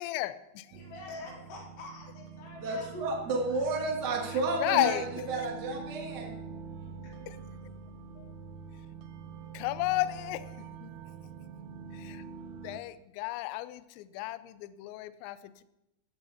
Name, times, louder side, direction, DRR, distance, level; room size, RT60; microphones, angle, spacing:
voice 1, 0.0-0.8 4.3-5.0 7.3-7.4 8.2-8.3 9.5-10.9 11.9-12.2 12.6-15.6, left 17 dB, 85° left, 14 dB, 2.6 m, -33 dB
voice 2, 0.7-3.8, left 3 dB, 65° left, -4 dB, 6.4 m, -47 dB
sound 1, 0.7-12.8, right 5 dB, 85° right, 3.4 m, -45 dB
voice 3, 2.6-6.4, right 3 dB, 60° right, 0 dB, 1.0 m, -32 dB
16.0 x 15.5 x 4.3 m, 0.93 s
omnidirectional pair, 5.9 m